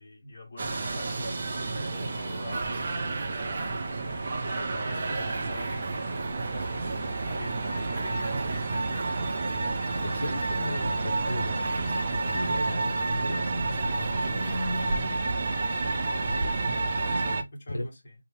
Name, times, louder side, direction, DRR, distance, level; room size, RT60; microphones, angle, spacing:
voice 1, 0.0-3.1 3.7-5.9 6.2-8.7 13.8-14.5 15.7-16.6 16.9-18.1, left 1 dB, 35° left, 1.3 m, -44 dB
sound 1, 0.6-17.4, right 3 dB, 35° right, 0.5 m, -30 dB
voice 2, 10.0-12.0 12.3-15.2 16.5-16.6 17.7-17.9, left 1 dB, 70° left, 0.7 m, -36 dB
2.8 x 2.2 x 3.2 m
figure-of-eight pair, 160°, 0 cm